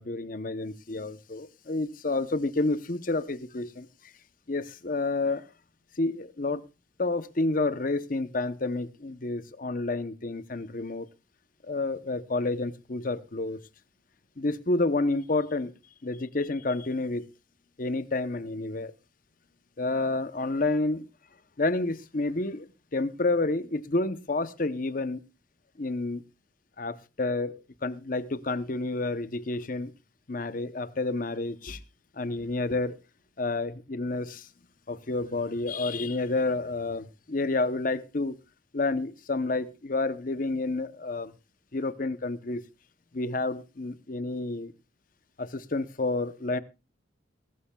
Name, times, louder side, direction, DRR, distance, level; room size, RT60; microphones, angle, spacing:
voice 1, 0.0-3.9 4.5-5.4 6.0-6.6 7.0-11.1 11.6-13.6 14.4-15.7 16.0-17.3 17.8-18.9 19.8-21.0 21.6-22.7 22.9-25.2 25.8-26.2 26.8-29.9 30.3-31.8 32.2-33.0 33.4-34.5 34.9-38.4 38.7-41.3 41.7-42.6 43.1-44.7 45.4-46.6, left 2 dB, 45° left, 0.8 m, -29 dB
21.5 x 13.0 x 2.3 m
head